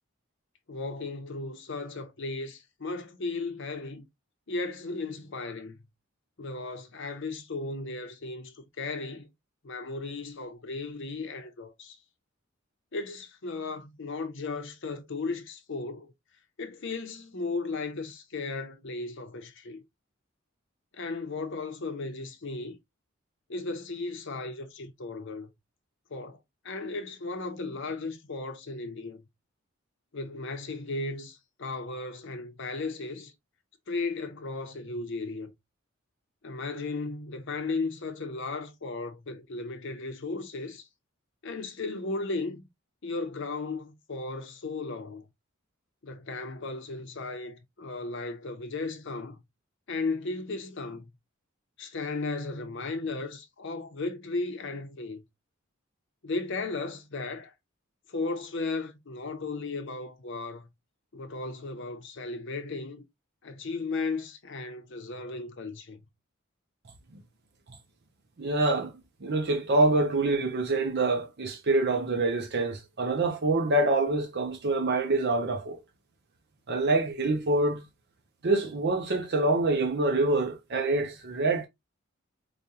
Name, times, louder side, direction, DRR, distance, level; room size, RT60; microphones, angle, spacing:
voice 1, 0.7-4.0 4.5-5.8 6.4-9.3 9.6-12.0 12.9-16.1 16.6-19.8 20.9-22.8 23.5-25.5 26.1-26.4 26.6-29.2 30.1-33.3 33.9-35.5 36.4-40.9 41.4-42.7 43.0-45.2 46.0-49.4 49.9-51.1 51.8-55.2 56.2-57.5 58.1-60.7 61.1-63.0 63.4-66.0, left 3 dB, 65° left, 0.8 m, -35 dB
voice 2, 68.4-68.9 69.2-75.8 76.7-77.8 78.4-81.7, right 2 dB, 55° right, 0.7 m, -26 dB
4.9 x 2.3 x 2.7 m
head